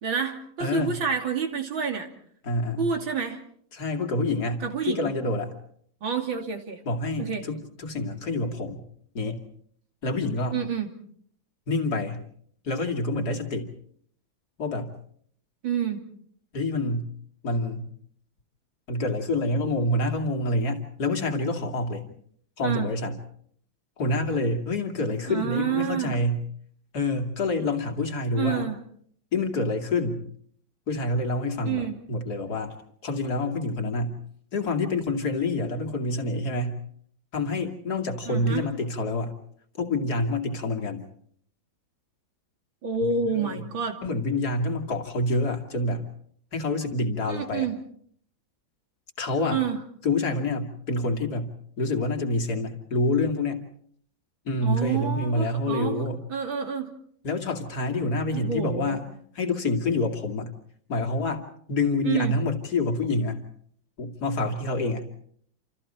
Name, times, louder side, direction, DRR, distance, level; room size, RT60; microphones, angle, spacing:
voice 1, 0.0-2.1 2.8-3.4 4.6-5.1 6.0-6.8 7.2-7.5 10.5-10.9 15.6-16.0 22.6-22.9 25.3-26.2 28.4-28.8 31.6-32.0 38.3-38.7 42.8-44.0 47.3-47.8 49.5-49.8 54.6-56.9 58.3-59.0 62.0-62.4, right 6 dB, 80° right, 4 dB, 3.4 m, -28 dB
voice 2, 0.6-1.0 2.4-2.9 3.7-5.6 6.8-8.8 9.1-9.4 10.0-10.6 11.7-12.2 12.6-13.7 14.6-14.9 16.5-17.1 17.4-17.9 18.9-22.0 22.6-23.2 24.0-26.4 26.9-28.7 29.3-30.2 30.9-32.8 33.0-34.2 34.5-36.8 37.3-39.3 39.8-41.0 43.0-43.6 44.0-46.1 46.5-47.7 49.2-49.6 50.0-53.6 54.4-56.2 57.2-59.0 59.3-60.5 60.9-63.4 64.0-65.1, left 2 dB, 50° left, 4 dB, 3.0 m, -27 dB
28.0 x 28.0 x 4.4 m, 0.62 s
omnidirectional pair, 2.2 m